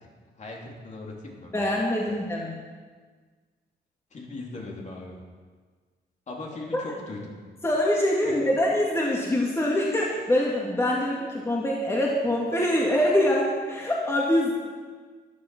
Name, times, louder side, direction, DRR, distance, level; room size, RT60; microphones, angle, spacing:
voice 1, 0.0-1.5 4.1-5.2 6.3-7.4 8.3-8.5, left 2 dB, 40° left, -1 dB, 3.1 m, -39 dB
voice 2, 1.5-2.6 6.7-6.8 7.6-14.5, left 1 dB, 15° left, -3 dB, 2.3 m, -24 dB
15.0 x 11.0 x 6.0 m, 1.5 s
cardioid pair, 125°, 18 cm